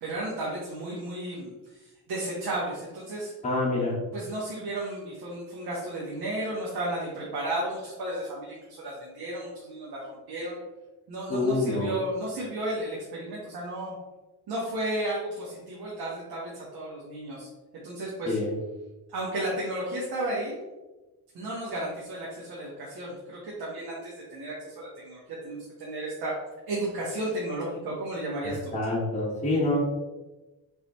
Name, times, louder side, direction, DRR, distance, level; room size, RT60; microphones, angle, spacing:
voice 1, 0.0-3.3 4.1-10.5 11.1-13.9 14.5-17.5 17.8-18.4 19.1-20.5 21.3-26.3 26.7-28.7, right 1 dB, 60° right, -5 dB, 1.3 m, -33 dB
voice 2, 3.4-3.9 11.3-11.9 18.2-18.5 28.7-29.8, left 2 dB, 15° left, -6 dB, 1.3 m, -26 dB
4.5 x 3.8 x 3.1 m, 1.1 s
cardioid pair, 110°, 41 cm